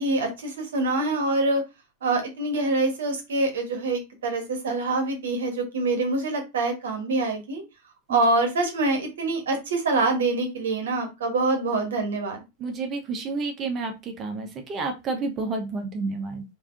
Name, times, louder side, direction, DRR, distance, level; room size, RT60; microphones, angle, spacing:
voice 1, 0.0-1.6 2.0-7.6 8.1-12.4, right 2 dB, 65° right, 5 dB, 1.0 m, -25 dB
voice 2, 12.6-16.4, right 3 dB, 30° right, 4 dB, 0.8 m, -30 dB
3.4 x 2.7 x 2.5 m, 0.25 s
figure-of-eight pair, 90°, 0 cm